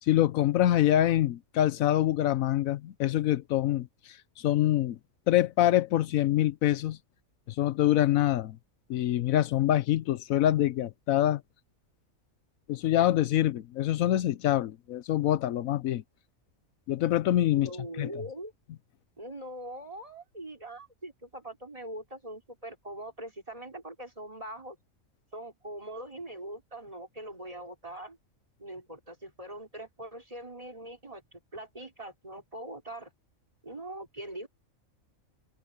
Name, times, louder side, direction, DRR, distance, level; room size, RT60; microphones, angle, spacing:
voice 1, 0.1-3.9 4.4-5.0 5.3-7.0 7.6-8.6 8.9-11.4 12.7-16.0 16.9-17.7 18.0-18.1, left 13 dB, 80° left, 1.0 m, -25 dB
voice 2, 17.5-18.5 19.2-24.8 25.3-28.2 28.6-33.1 33.6-34.5, right 1 dB, 25° right, 4.0 m, -42 dB
omnidirectional pair, 1.4 m